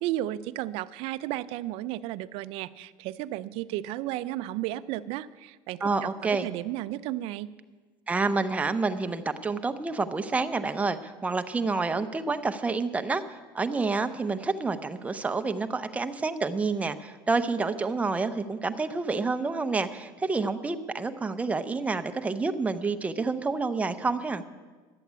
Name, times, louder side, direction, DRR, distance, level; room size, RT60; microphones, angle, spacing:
voice 1, 0.0-7.5, right 14 dB, 65° right, 15 dB, 0.5 m, -33 dB
voice 2, 5.8-6.5 8.1-13.2 13.5-24.4, right 4 dB, 15° right, 8 dB, 0.7 m, -28 dB
11.5 x 8.4 x 8.1 m, 1.4 s
cardioid pair, 130°, 11 cm